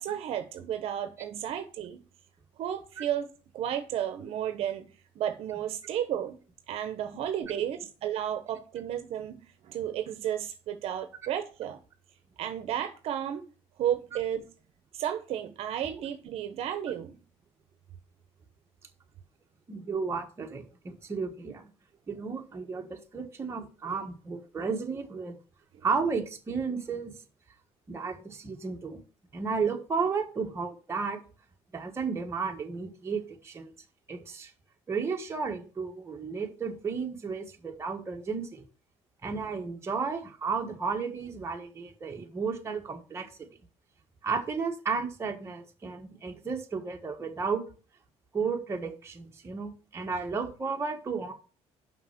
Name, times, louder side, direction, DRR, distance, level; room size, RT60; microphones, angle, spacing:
voice 1, 0.0-2.0 2.6-3.3 3.5-4.9 5.1-6.4 6.7-11.8 12.4-13.5 13.8-14.5 14.9-17.2 25.7-25.8, right 10 dB, 65° right, 0.9 m, -33 dB
voice 2, 19.7-21.6 22.1-25.4 25.8-27.1 27.9-29.0 29.3-31.2 31.7-33.7 34.1-34.5 34.9-38.6 39.2-43.5 44.2-47.6 48.3-51.3, right 5 dB, 25° right, 1.4 m, -33 dB
5.9 x 5.6 x 5.9 m
cardioid pair, 140°, 11 cm